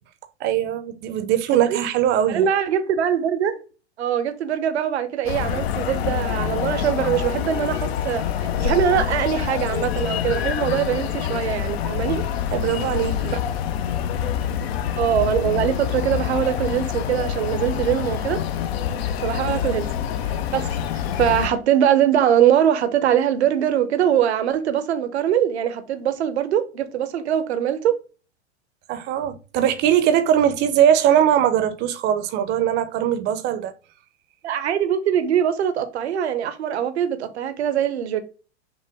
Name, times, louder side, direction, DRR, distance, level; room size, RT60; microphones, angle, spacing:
voice 1, 0.4-2.5 12.5-13.4 28.9-33.7, right 10 dB, 30° right, 0.6 m, -20 dB
voice 2, 2.3-3.6 4.0-12.3 13.3-13.4 15.0-18.4 19.2-19.9 20.5-28.0 34.4-38.2, right 9 dB, 70° right, 0.8 m, -22 dB
sound 1, 5.3-21.5, left 9 dB, 65° left, 0.7 m, -26 dB
5.8 x 2.2 x 3.5 m
hypercardioid pair, 100°, 34 cm